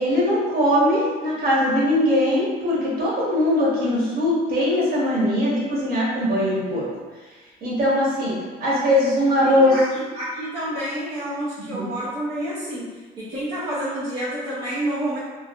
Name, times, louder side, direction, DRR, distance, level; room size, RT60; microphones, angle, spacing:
voice 1, 0.0-6.8 7.6-9.7 11.7-11.9, left 1 dB, 65° right, -7 dB, 1.3 m, -21 dB
voice 2, 9.4-12.9 13.2-15.2, right 1 dB, 85° right, -10 dB, 0.8 m, -29 dB
3.2 x 2.5 x 2.4 m, 1.3 s
cardioid pair, 110°, 17 cm